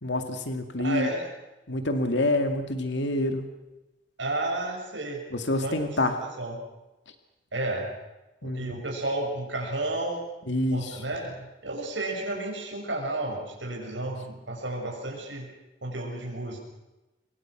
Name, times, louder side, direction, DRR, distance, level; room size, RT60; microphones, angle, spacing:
voice 1, 0.0-1.1 1.7-3.5 5.3-6.2 8.4-8.8 10.5-11.0, left 1 dB, 70° left, 6 dB, 2.3 m, -27 dB
voice 2, 0.8-1.3 4.2-5.2 5.6-5.8 6.1-6.6 7.5-7.9 8.4-10.2 10.7-11.4 11.6-15.5 15.8-16.6, right 2 dB, 80° right, 0 dB, 6.4 m, -32 dB
27.0 x 24.0 x 6.1 m, 1.0 s
head